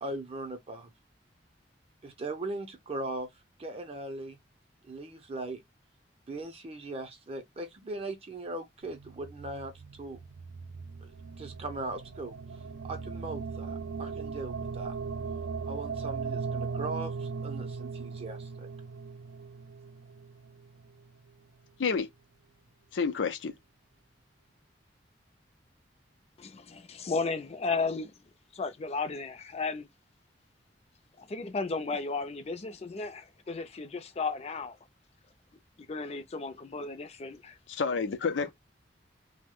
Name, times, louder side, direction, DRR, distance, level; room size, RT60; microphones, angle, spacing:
voice 1, 0.0-0.9 2.0-4.4 4.8-5.6 6.3-9.7 10.0-10.2 11.0-11.1 11.4-15.0 15.6-18.7, right 2 dB, 35° right, 0.5 m, -39 dB
sound 1, 8.8-21.1, right 5 dB, 90° right, 0.5 m, -38 dB
voice 2, 22.9-23.6 37.7-38.5, left 5 dB, 85° left, 0.5 m, -29 dB
voice 3, 26.4-28.1 28.5-29.9 31.2-34.8 35.8-37.6, left 4 dB, 35° left, 0.5 m, -34 dB
2.7 x 2.1 x 3.6 m
head